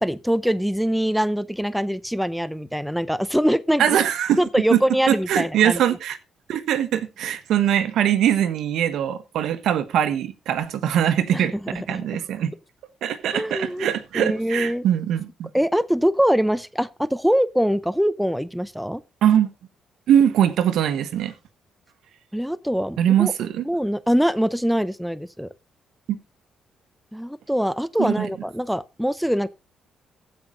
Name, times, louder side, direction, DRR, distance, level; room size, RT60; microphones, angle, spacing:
voice 1, 0.0-4.0 4.4-5.8 11.3-12.1 13.3-14.8 15.5-19.0 22.3-23.3 23.7-25.5 27.1-29.5, equal, ahead, 0.6 m, -23 dB
voice 2, 3.8-4.4 4.7-4.8 5.1-6.2 6.5-11.5 11.9-12.5 13.0-15.5 19.2-19.5 20.1-21.3 23.0-23.6 28.0-28.3, right 10 dB, 75° right, 1.4 m, -21 dB
15.0 x 5.7 x 3.9 m
cardioid pair, 90°, 0 cm